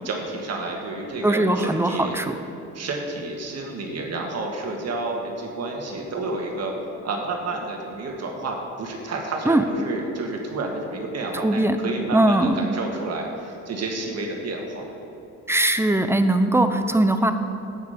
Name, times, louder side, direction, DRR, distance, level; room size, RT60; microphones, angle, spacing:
voice 1, 0.0-2.2 2.7-6.7 7.0-14.9, right 2 dB, 55° right, 1 dB, 1.7 m, -30 dB
voice 2, 1.2-2.4 9.5-9.6 11.3-11.8 12.1-12.7 15.5-17.3, right 1 dB, 10° right, 8 dB, 0.6 m, -20 dB
9.7 x 8.4 x 5.1 m, 2.9 s
cardioid pair, 90°, 30 cm